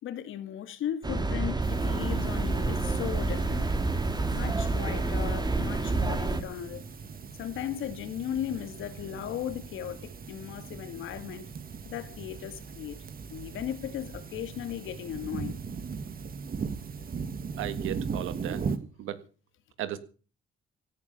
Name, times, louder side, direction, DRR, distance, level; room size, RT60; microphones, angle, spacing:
voice 1, 0.0-3.7 4.3-6.8 7.4-11.4 11.9-13.0 13.3-15.5, left 10 dB, 80° left, 2.3 m, -36 dB
sound 1, 1.0-6.4, right 3 dB, 20° right, 2.3 m, -28 dB
sound 2, 1.6-18.8, right 5 dB, 45° right, 2.0 m, -39 dB
voice 2, 17.6-18.6 19.0-19.2 19.8-20.0, right 12 dB, 85° right, 1.8 m, -34 dB
17.0 x 10.5 x 6.9 m
cardioid pair, 90°, 20 cm